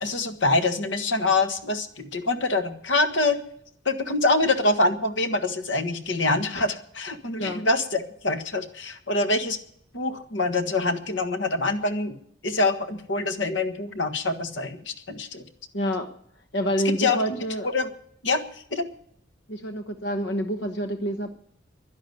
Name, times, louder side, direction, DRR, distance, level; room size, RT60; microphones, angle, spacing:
voice 1, 0.0-3.4 3.8-9.6 9.9-12.1 12.4-15.4 17.0-17.4 17.6-17.9 18.2-18.4 18.7-18.9, left 2 dB, 90° left, 8 dB, 1.5 m, -25 dB
voice 2, 15.7-16.1 16.5-17.7 19.5-21.4, equal, 65° left, 7 dB, 1.1 m, -27 dB
11.5 x 11.0 x 9.3 m, 0.66 s
head